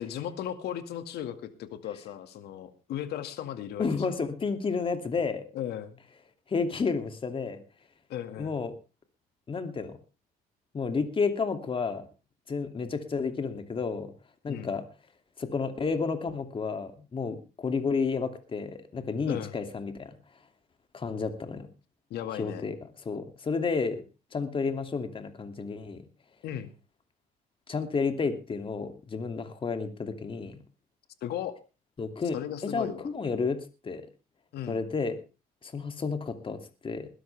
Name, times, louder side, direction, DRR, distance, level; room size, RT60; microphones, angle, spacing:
voice 1, 0.0-4.2 5.5-6.0 8.1-8.6 14.5-14.7 19.3-19.5 22.1-22.7 26.4-26.7 31.2-31.6 32.3-33.1 34.5-34.8, left 10 dB, 75° left, 10 dB, 2.1 m, -36 dB
voice 2, 3.8-5.4 6.5-7.6 8.4-8.7 9.5-10.0 10.7-12.1 12.5-14.1 14.4-14.8 15.4-20.1 20.9-21.7 22.3-22.7 23.0-24.0 24.3-26.0 27.7-30.6 32.0-32.4 32.7-33.6 33.8-34.0 34.7-35.2 35.6-37.1, left 4 dB, 30° left, 8 dB, 2.7 m, -31 dB
21.0 x 13.0 x 3.5 m, 0.32 s
cardioid pair, 110°, 17 cm